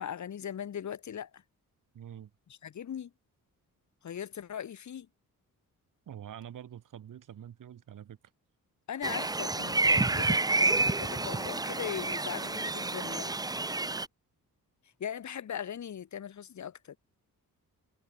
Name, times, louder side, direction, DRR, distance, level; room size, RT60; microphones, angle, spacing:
voice 1, 0.0-1.4 2.6-3.1 4.0-5.1 8.9-13.7 15.0-17.0, left 9 dB, 55° left, 2.9 m, -39 dB
voice 2, 1.9-2.3 6.1-8.2, right 10 dB, 65° right, 3.5 m, -46 dB
sound 1, 9.0-14.1, right 3 dB, 10° right, 0.7 m, -29 dB
wide cardioid pair, 155°, 34 cm